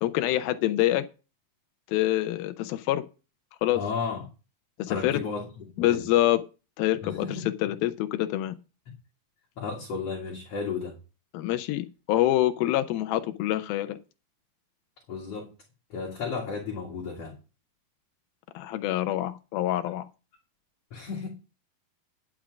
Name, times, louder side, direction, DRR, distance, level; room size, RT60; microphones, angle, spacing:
voice 1, 0.0-1.1 1.9-3.0 3.6-3.8 4.8-5.2 5.8-6.4 6.8-8.6 11.3-14.0 18.6-20.1, left 14 dB, 85° left, 10 dB, 2.4 m, -26 dB
voice 2, 3.7-4.3 4.9-5.5 5.8-6.1 7.0-7.5 8.9-9.0 9.6-11.0 15.1-15.5 15.9-17.4 20.9-21.3, left 5 dB, 50° left, -1 dB, 2.6 m, -33 dB
10.5 x 6.2 x 6.1 m, 0.32 s
omnidirectional pair, 4.2 m